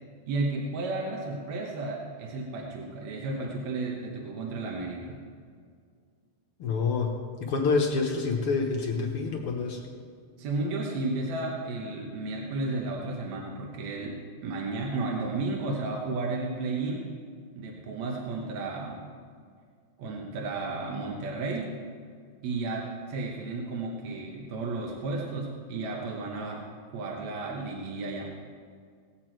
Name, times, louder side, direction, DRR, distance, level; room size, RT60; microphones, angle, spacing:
voice 1, 0.3-5.2 10.4-17.1 17.6-19.0 20.0-21.7 22.4-28.2, right 3 dB, 65° right, -1 dB, 2.2 m, -33 dB
voice 2, 6.6-7.1 7.4-9.8, left 4 dB, 60° left, 1 dB, 1.6 m, -27 dB
18.5 x 8.3 x 4.5 m, 2.1 s
omnidirectional pair, 3.5 m